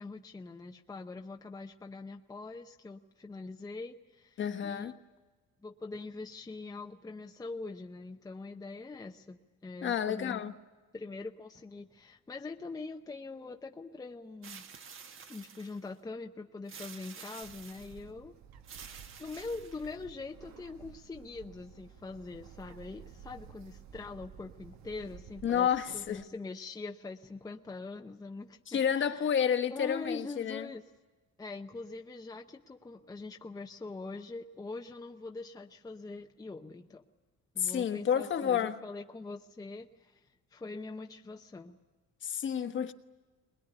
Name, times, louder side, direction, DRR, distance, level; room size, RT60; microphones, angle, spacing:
voice 1, 0.0-4.9 5.6-10.4 10.9-14.7 15.3-18.3 19.2-29.3 29.7-30.8 31.4-37.0 37.5-41.8, left 3 dB, 10° left, 0.7 m, -43 dB
voice 2, 4.4-4.9 9.8-10.5 25.4-26.2 28.7-30.6 37.6-38.8 42.2-42.9, left 8 dB, 40° left, 1.2 m, -30 dB
sound 1, 14.4-15.9 16.7-18.0 18.6-20.1, right 6 dB, 45° right, 1.3 m, -49 dB
Bird, 17.4-26.2, right 8 dB, 65° right, 1.3 m, -53 dB
21.5 x 21.5 x 9.9 m
cardioid pair, 145°, 29 cm